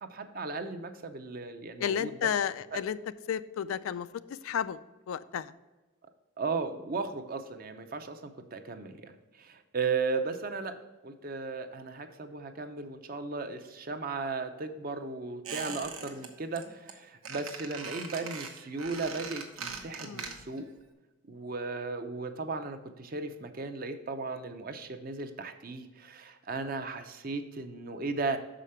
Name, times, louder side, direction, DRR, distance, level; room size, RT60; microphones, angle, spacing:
voice 1, 0.0-2.3 2.7-2.8 6.4-10.7 11.0-20.6 21.3-28.4, right 4 dB, 45° right, 8 dB, 0.6 m, -36 dB
voice 2, 1.8-3.0 3.3-4.8 5.1-5.5 20.0-20.3, left 8 dB, 75° left, 15 dB, 0.3 m, -32 dB
Squeak, 15.4-16.3 16.5-16.9 17.2-20.6 20.9-21.0, right 5 dB, 80° right, 1.0 m, -40 dB
6.5 x 5.0 x 5.6 m, 1.2 s
head